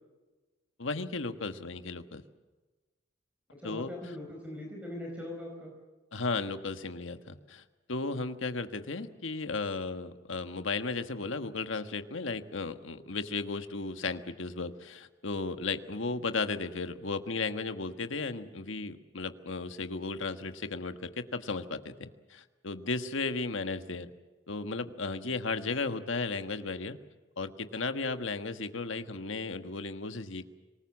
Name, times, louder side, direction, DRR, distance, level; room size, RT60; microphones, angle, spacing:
voice 1, 0.8-2.2 3.6-3.9 6.1-7.6 7.9-24.1 24.5-27.0 27.4-30.5, left 3 dB, 75° left, 8 dB, 1.5 m, -35 dB
voice 2, 3.6-5.7, left 1 dB, 5° right, 0 dB, 4.5 m, -41 dB
25.5 x 19.5 x 7.4 m, 1.2 s
head